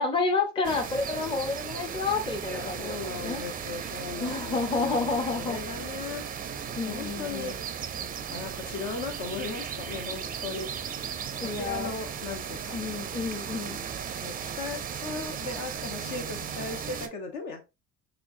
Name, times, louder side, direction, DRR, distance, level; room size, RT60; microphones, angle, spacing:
voice 1, 0.0-3.4 3.7-3.8 4.2-5.6 6.8-7.6 11.4-11.9 12.7-13.8, left 4 dB, 15° left, 0.6 m, -30 dB
sound 1, 0.6-17.1, right 7 dB, 30° right, 0.4 m, -36 dB
voice 2, 2.5-6.3 6.6-7.6 8.3-10.7 11.4-12.8 14.2-17.7, left 4 dB, 65° left, 1.2 m, -37 dB
4.3 x 2.4 x 2.6 m
cardioid pair, 110°, 31 cm